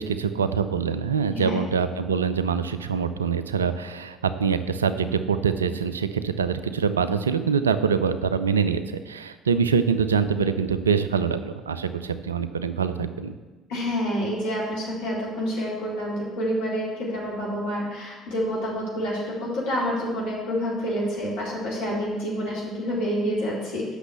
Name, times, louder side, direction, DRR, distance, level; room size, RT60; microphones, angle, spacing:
voice 1, 0.0-13.4, right 6 dB, 80° right, 12 dB, 0.4 m, -24 dB
voice 2, 1.3-1.6 13.7-23.9, equal, 65° left, -6 dB, 3.9 m, -28 dB
8.1 x 6.4 x 8.2 m, 1.3 s
figure-of-eight pair, 55°, 0 cm